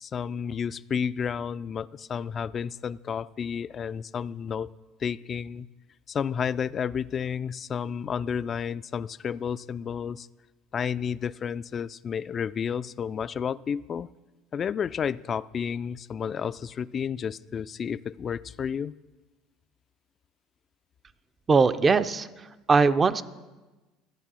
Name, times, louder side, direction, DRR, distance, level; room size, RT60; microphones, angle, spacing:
voice 1, 0.0-4.7 5.0-5.7 6.1-10.3 10.7-14.1 14.5-18.9, left 7 dB, 40° left, 17 dB, 0.3 m, -31 dB
voice 2, 21.5-22.3 22.7-23.2, right 4 dB, 30° right, 12 dB, 0.5 m, -20 dB
12.5 x 8.2 x 6.2 m, 1.2 s
supercardioid pair, 85°, 0 cm